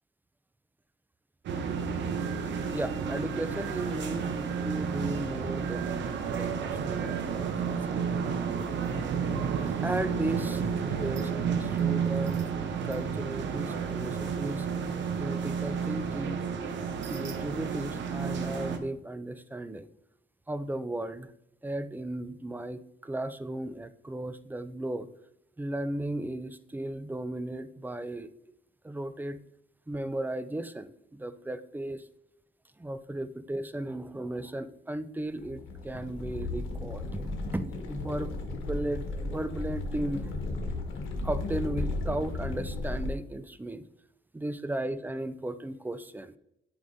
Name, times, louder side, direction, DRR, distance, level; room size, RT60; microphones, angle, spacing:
sound 1, 1.4-18.8, right 6 dB, 65° right, 0.8 m, -31 dB
voice 1, 2.7-4.3 4.6-8.1 9.6-12.4 12.8-14.7 15.2-16.4 17.1-19.9 20.5-21.3 21.6-25.1 25.6-28.3 28.8-29.4 29.9-32.0 32.8-37.2 37.5-40.3 41.2-43.8 44.3-46.3, right 1 dB, 10° right, 13 dB, 0.4 m, -35 dB
sound 2, 35.4-43.1, left 2 dB, 80° left, 1.4 m, -34 dB
8.3 x 5.1 x 2.7 m, 0.80 s
cardioid pair, 90°, 20 cm